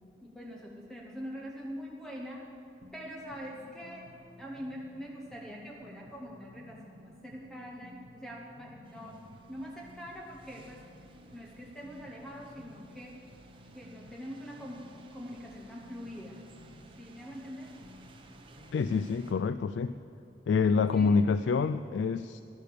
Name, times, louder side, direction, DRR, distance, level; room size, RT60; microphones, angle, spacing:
voice 1, 0.0-2.5 2.9-10.9 11.3-13.2 13.7-16.4 17.0-17.7 20.9-21.2, equal, 5° left, -2 dB, 1.0 m, -44 dB
sound 1, 2.8-18.8, equal, 75° right, 1.0 m, -56 dB
sound 2, 8.8-19.3, right 2 dB, 30° right, 1.0 m, -57 dB
voice 2, 18.7-20.0 20.5-22.4, left 5 dB, 85° left, 12 dB, 0.3 m, -27 dB
13.5 x 11.0 x 6.8 m, 2.7 s
head